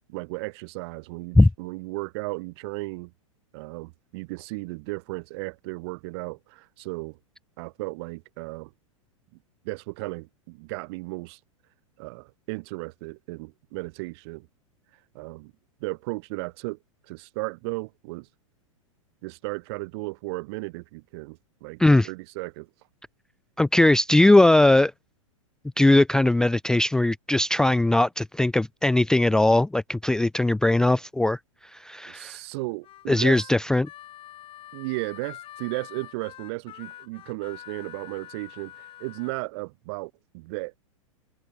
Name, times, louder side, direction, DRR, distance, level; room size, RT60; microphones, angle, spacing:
voice 1, 0.1-3.1 3.5-7.2 7.6-8.7 9.6-11.4 12.0-14.5 15.1-15.5 15.8-16.8 17.1-18.3 19.2-22.7 32.1-33.5 34.7-40.8, right 26 dB, 50° right, 3.4 m, -35 dB
voice 2, 23.6-24.9 25.8-31.4 31.7-32.4 33.1-33.9, left 2 dB, 5° left, 0.5 m, -19 dB
Harmonica, 32.8-39.4, left 13 dB, 30° left, 6.3 m, -45 dB
hypercardioid pair, 105°, 17 cm